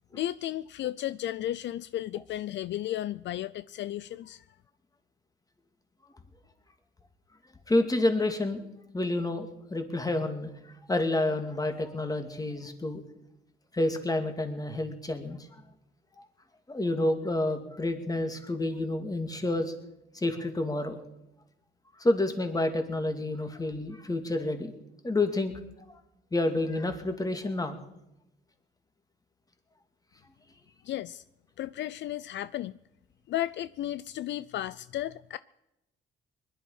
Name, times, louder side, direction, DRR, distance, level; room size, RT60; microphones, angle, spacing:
voice 1, 0.1-4.4 30.8-31.2 31.6-32.7 33.3-35.4, left 13 dB, 65° left, 0.4 m, -34 dB
voice 2, 7.7-8.6 8.9-10.5 10.9-13.0 13.7-15.5 16.7-19.7 20.1-21.0 22.0-24.7 25.0-25.5 26.3-27.8, left 2 dB, 20° left, 2.4 m, -29 dB
21.0 x 11.5 x 5.6 m
cardioid pair, 90°, 20 cm